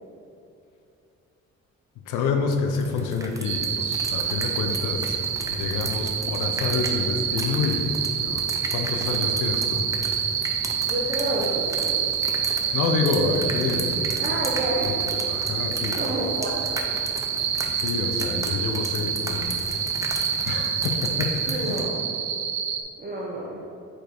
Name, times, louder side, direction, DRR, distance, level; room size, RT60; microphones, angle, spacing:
voice 1, 2.1-7.9 8.2-9.9 12.7-14.3 15.3-16.2 17.7-19.7 20.4-21.8, left 4 dB, 85° left, 4 dB, 0.7 m, -28 dB
sound 1, 2.5-21.8, right 2 dB, 10° right, 0.6 m, -37 dB
sound 2, 3.4-22.8, right 8 dB, 65° right, 0.6 m, -27 dB
voice 2, 10.8-12.0 14.2-15.2 15.9-16.8 21.5-22.0 23.0-23.6, right 1 dB, 30° right, -5 dB, 1.0 m, -29 dB
5.1 x 4.3 x 4.4 m, 2.7 s
cardioid pair, 90°, 30 cm